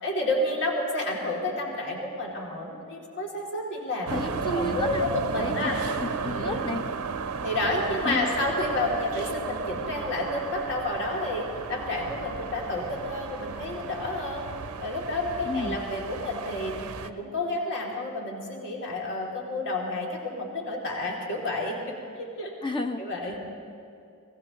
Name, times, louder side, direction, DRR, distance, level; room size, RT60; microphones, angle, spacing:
voice 1, 0.0-4.2 4.5-5.8 6.2-6.7 7.4-14.5 14.8-16.7 17.0-21.8 22.2-22.5 23.0-23.4, left 2 dB, 55° left, -2 dB, 2.6 m, -30 dB
voice 2, 4.1-5.1 5.4-5.5 6.0-6.8 8.0-8.3 15.4-15.8 22.6-23.0, left 1 dB, 20° left, 6 dB, 0.7 m, -31 dB
sound 1, 4.1-17.1, right 5 dB, 70° right, 0.6 m, -34 dB
23.5 x 18.0 x 3.0 m, 2.5 s
head